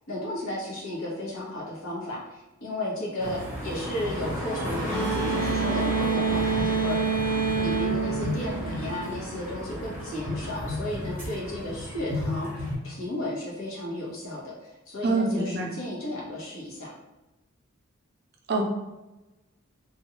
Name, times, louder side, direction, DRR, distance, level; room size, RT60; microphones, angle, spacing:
voice 1, 0.0-7.0 7.6-14.5 14.9-16.9, left 1 dB, 75° left, -5 dB, 0.9 m, -34 dB
sound 1, 3.2-12.8, left 1 dB, 10° right, 0.7 m, -33 dB
sound 2, 4.8-9.3, right 5 dB, 15° left, 1.0 m, -27 dB
voice 2, 15.0-15.7 18.5-18.6, right 3 dB, 50° right, 1 dB, 0.4 m, -25 dB
2.4 x 2.2 x 2.9 m, 1.0 s
head